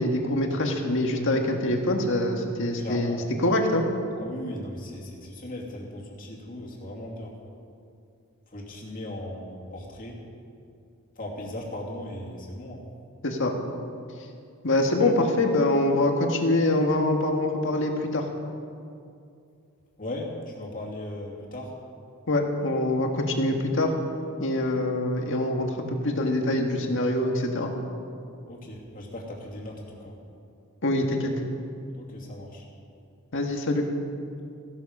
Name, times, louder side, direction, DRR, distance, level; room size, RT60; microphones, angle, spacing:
voice 1, 0.0-3.8 13.2-13.5 14.6-18.3 22.3-23.9 24.4-27.7 30.8-31.3 33.3-33.8, left 1 dB, 60° left, 3 dB, 1.7 m, -24 dB
voice 2, 2.8-3.3 4.2-7.3 8.5-10.2 11.2-12.8 20.0-21.7 28.5-30.2 31.9-32.6, left 1 dB, 40° left, -3 dB, 2.8 m, -37 dB
16.0 x 12.5 x 5.5 m, 2.5 s
head